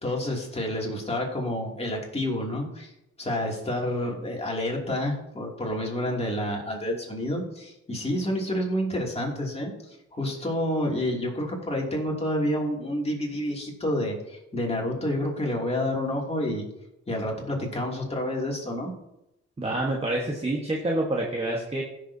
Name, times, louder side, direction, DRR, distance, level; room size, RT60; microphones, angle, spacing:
voice 1, 0.0-2.9 3.2-16.7 17.1-18.9, left 1 dB, 20° left, -1 dB, 2.8 m, -29 dB
voice 2, 19.6-21.8, right 1 dB, 20° right, -1 dB, 1.4 m, -27 dB
16.0 x 6.7 x 2.8 m, 0.88 s
cardioid pair, 100°, 30 cm